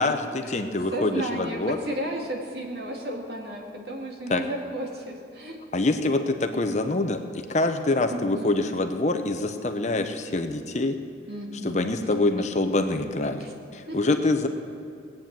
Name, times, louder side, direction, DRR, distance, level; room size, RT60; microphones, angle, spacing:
voice 1, 0.0-1.8 4.3-4.4 5.7-11.0 11.6-14.5, left 2 dB, 40° left, 7 dB, 0.8 m, -25 dB
voice 2, 0.9-5.6 8.1-8.5 11.3-11.8 13.4-13.5 13.9-14.2, right 1 dB, 60° right, 0 dB, 2.3 m, -33 dB
19.5 x 8.8 x 7.5 m, 2.4 s
head